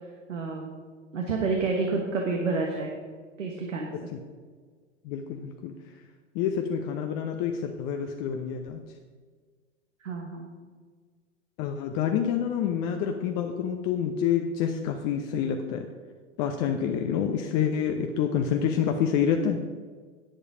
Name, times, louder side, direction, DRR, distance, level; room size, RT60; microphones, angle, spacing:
voice 1, 0.3-0.7 1.1-2.9 3.4-4.1 10.0-10.5, right 3 dB, 85° right, 0 dB, 1.5 m, -29 dB
voice 2, 5.0-5.7 6.3-8.8 11.6-15.9 16.4-19.6, left 8 dB, 45° left, 4 dB, 0.9 m, -27 dB
10.0 x 8.4 x 5.0 m, 1.6 s
hypercardioid pair, 95°, 36 cm